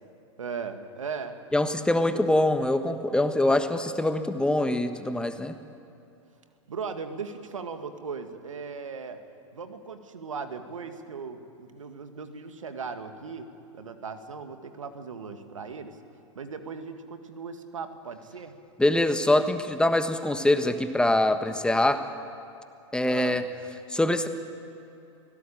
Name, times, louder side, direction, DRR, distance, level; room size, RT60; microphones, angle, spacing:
voice 1, 0.4-1.4 2.1-2.4 6.7-9.2 9.5-16.0 16.4-18.6 23.1-23.5, right 5 dB, 85° right, 7 dB, 1.9 m, -38 dB
voice 2, 1.5-5.6 18.8-22.0 22.9-23.4 23.9-24.3, left 1 dB, 5° left, 8 dB, 1.3 m, -24 dB
24.0 x 18.0 x 8.7 m, 2.7 s
hypercardioid pair, 105°, 16 cm